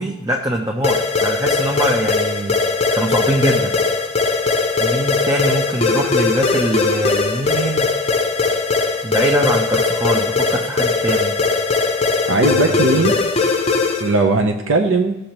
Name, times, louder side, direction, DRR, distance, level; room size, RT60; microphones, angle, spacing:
voice 1, 0.0-2.5 2.9-3.7 4.8-7.9 9.0-11.3 12.5-13.1, right 1 dB, 15° right, 1 dB, 0.6 m, -22 dB
sound 1, 0.8-14.2, left 4 dB, 30° left, 0.7 m, -19 dB
voice 2, 12.3-13.1 14.0-15.2, right 3 dB, 65° right, 3 dB, 0.7 m, -17 dB
15.0 x 6.5 x 3.0 m, 0.91 s
head